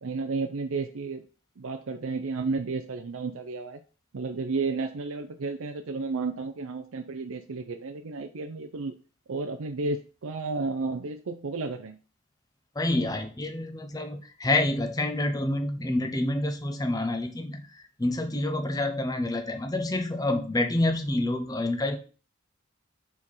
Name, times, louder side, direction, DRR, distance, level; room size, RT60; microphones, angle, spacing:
voice 1, 0.0-1.2 1.6-3.8 4.1-8.9 9.3-12.0, right 3 dB, 75° right, 7 dB, 0.5 m, -32 dB
voice 2, 12.8-22.0, left 1 dB, 15° left, 6 dB, 0.7 m, -28 dB
4.7 x 4.3 x 5.5 m, 0.38 s
head